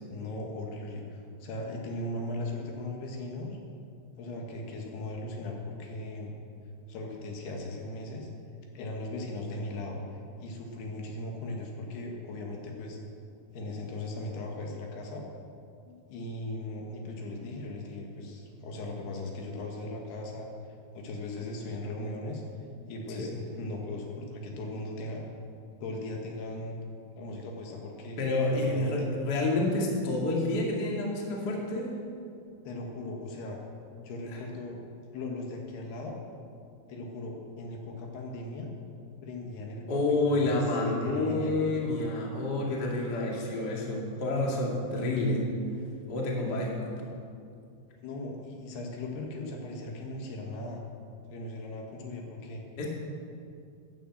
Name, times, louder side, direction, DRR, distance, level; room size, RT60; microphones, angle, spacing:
voice 1, 0.1-3.6 4.2-6.3 6.9-8.3 8.7-10.0 10.4-13.0 13.5-15.2 15.9-22.4 22.8-25.3 25.8-26.8 27.2-28.2 28.6-29.1 32.6-33.6 34.0-34.8 35.1-36.1 36.9-38.7 39.2-41.7 48.0-50.8 51.3-52.6, left 2 dB, 70° left, 1 dB, 3.4 m, -38 dB
voice 2, 28.2-31.9 39.9-45.5 46.1-46.9 52.8-52.9, left 2 dB, 35° left, -2 dB, 1.9 m, -29 dB
13.0 x 10.0 x 7.6 m, 2.4 s
omnidirectional pair, 5.0 m